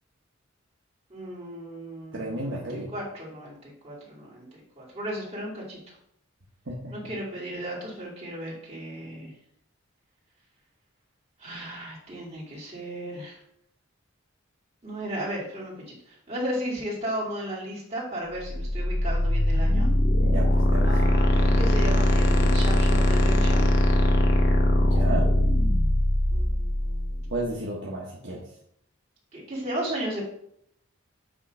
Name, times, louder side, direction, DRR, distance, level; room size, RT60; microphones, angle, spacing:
voice 1, 1.1-4.5 4.8-5.9 6.9-9.3 11.4-13.4 14.8-19.9 20.8-23.7 26.3-27.3 29.3-30.2, right 1 dB, 30° right, -6 dB, 2.6 m, -35 dB
voice 2, 2.1-2.9 6.6-6.9 20.2-21.0 24.8-25.3 27.3-28.4, right 1 dB, 60° right, -4 dB, 1.1 m, -33 dB
sound 1, 18.5-27.3, left 1 dB, 55° left, 0.9 m, -21 dB
8.5 x 3.2 x 4.8 m, 0.73 s
head